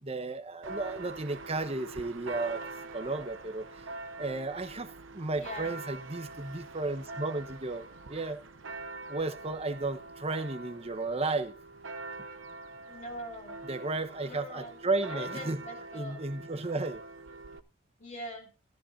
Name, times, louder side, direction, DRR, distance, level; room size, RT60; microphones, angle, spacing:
voice 1, 0.0-2.7 2.9-3.7 4.2-8.4 9.1-11.5 13.6-17.0, right 3 dB, 30° right, 1.2 m, -34 dB
Church bell, 0.6-17.6, right 3 dB, 65° right, 0.8 m, -44 dB
voice 2, 5.4-5.8 12.9-13.6 14.2-14.8 15.1-16.2 18.0-18.5, left 1 dB, 35° left, 3.7 m, -42 dB
14.0 x 14.0 x 2.8 m
head